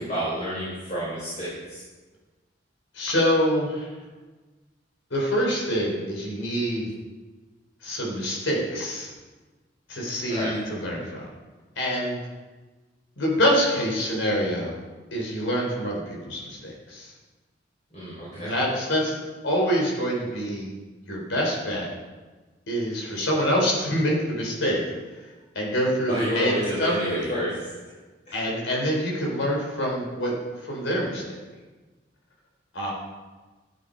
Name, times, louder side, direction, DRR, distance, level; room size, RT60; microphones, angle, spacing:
voice 1, 0.0-1.8 10.3-10.5 17.9-18.6 26.1-27.7 28.3-28.5, equal, 35° left, -8 dB, 4.4 m, -29 dB
voice 2, 2.9-3.9 5.1-6.9 7.8-9.1 9.9-11.3 11.8-12.2 13.2-14.8 15.1-17.1 18.3-20.7 21.1-21.9 22.7-24.9 25.1-25.3 25.5-27.3 28.3-31.2 32.7-32.9, equal, 80° left, -2 dB, 4.0 m, -26 dB
13.0 x 9.4 x 5.2 m, 1.3 s
head